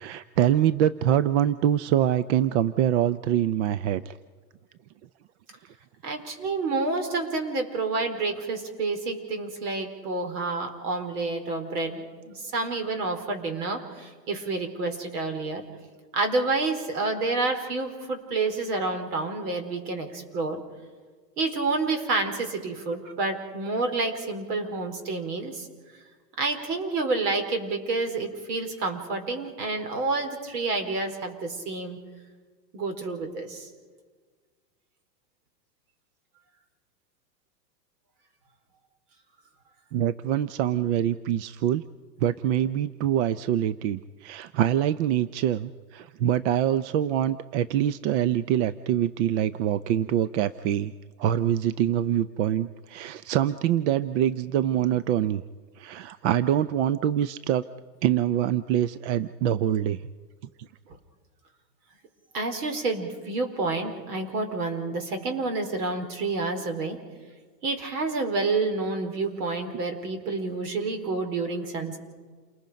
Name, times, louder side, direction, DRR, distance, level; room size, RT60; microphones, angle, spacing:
voice 1, 0.0-4.1 39.9-41.8 42.2-50.9 51.2-55.4 55.8-57.6 58.0-60.0, right 10 dB, 45° right, 15 dB, 0.6 m, -25 dB
voice 2, 6.0-15.6 16.1-20.6 21.4-25.7 26.4-32.1 32.7-33.7 62.3-67.0 67.6-72.0, right 3 dB, 65° right, 6 dB, 4.9 m, -29 dB
29.0 x 21.0 x 5.2 m, 1.5 s
supercardioid pair, 150°, 49 cm